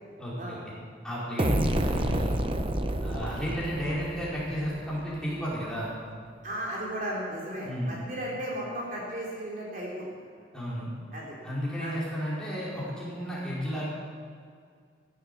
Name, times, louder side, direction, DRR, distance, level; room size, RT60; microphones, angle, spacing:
voice 1, 0.2-0.6 1.0-2.4 3.0-5.9 7.6-8.1 10.5-10.9 11.4-13.9, equal, 5° left, -8 dB, 5.0 m, -32 dB
sound 1, 1.4-5.0, right 1 dB, 30° right, 0.8 m, -29 dB
voice 2, 6.4-10.2 11.1-11.3 11.8-12.0, right 1 dB, 45° right, -4 dB, 3.5 m, -35 dB
16.0 x 12.0 x 7.0 m, 2.1 s
head